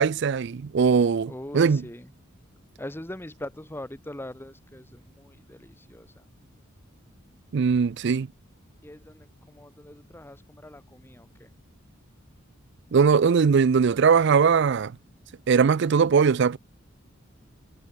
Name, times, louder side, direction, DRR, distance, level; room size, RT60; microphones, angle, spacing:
voice 1, 0.0-1.8 7.5-8.3 12.9-14.9 15.5-16.6, right 6 dB, 60° right, 0.4 m, -20 dB
voice 2, 1.2-2.1 2.8-6.2 7.5-8.2 8.8-11.5, left 1 dB, 10° left, 1.5 m, -42 dB
head